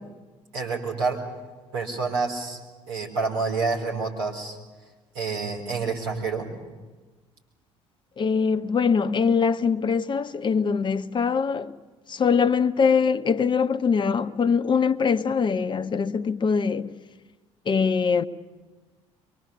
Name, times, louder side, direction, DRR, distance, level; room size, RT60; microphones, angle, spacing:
voice 1, 0.5-1.2 1.7-2.6 2.9-4.6 5.1-6.5, right 4 dB, 65° right, 4.1 m, -28 dB
voice 2, 8.2-11.7 12.1-16.9 17.7-18.3, left 6 dB, 30° left, 0.8 m, -23 dB
23.5 x 23.0 x 7.1 m
figure-of-eight pair, 55°, 16 cm